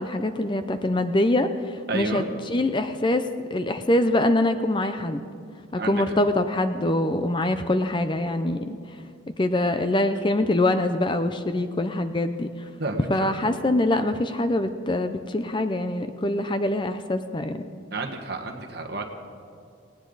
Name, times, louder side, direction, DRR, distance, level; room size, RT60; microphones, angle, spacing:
voice 1, 0.0-3.3 3.5-5.2 5.7-8.8 9.4-12.5 13.1-17.6, left 1 dB, 25° left, 9 dB, 0.5 m, -24 dB
voice 2, 1.9-2.3 5.8-6.2 12.8-13.3 17.9-19.0, right 2 dB, 55° right, 2 dB, 1.6 m, -31 dB
19.0 x 18.5 x 4.0 m, 2.5 s
head